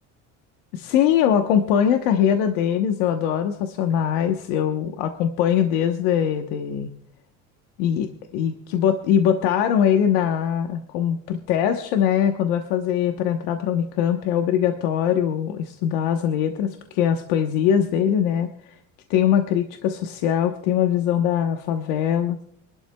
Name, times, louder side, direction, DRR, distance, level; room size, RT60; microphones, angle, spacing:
voice 1, 0.7-6.9 7.8-18.8 19.1-22.4, left 9 dB, 85° left, 5 dB, 1.1 m, -22 dB
25.5 x 12.0 x 2.3 m, 0.67 s
cardioid pair, 175°, 32 cm